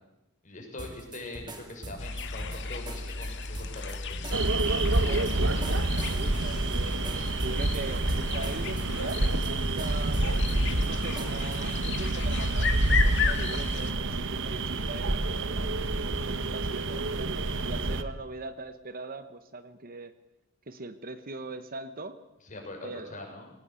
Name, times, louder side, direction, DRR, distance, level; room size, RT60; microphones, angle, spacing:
voice 1, 0.4-4.2 16.9-17.0 22.4-23.5, left 2 dB, 35° left, 1 dB, 6.5 m, -42 dB
sound 1, 0.8-11.8, right 2 dB, 20° right, 2.8 m, -44 dB
sound 2, 2.0-13.9, left 5 dB, 55° left, 2.2 m, -35 dB
sound 3, 4.3-18.0, right 2 dB, 60° right, 1.3 m, -28 dB
voice 2, 4.9-10.3 10.8-15.2 16.0-20.1 20.7-22.2 22.8-23.2, right 2 dB, 40° right, 11 dB, 1.2 m, -41 dB
21.0 x 18.0 x 8.4 m, 0.94 s
head